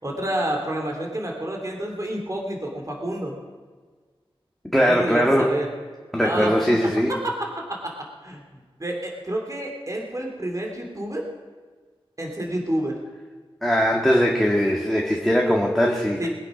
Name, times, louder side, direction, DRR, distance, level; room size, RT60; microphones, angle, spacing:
voice 1, 0.0-3.4 4.8-5.7 6.2-6.8 7.6-7.7 8.2-8.4 8.8-11.2 12.2-13.0 16.2-16.3, right 1 dB, 35° right, 0 dB, 3.1 m, -29 dB
voice 2, 4.7-5.6 6.1-7.1 13.6-16.3, equal, ahead, -1 dB, 2.0 m, -20 dB
22.0 x 9.8 x 5.3 m, 1.5 s
wide cardioid pair, 55°, 10 cm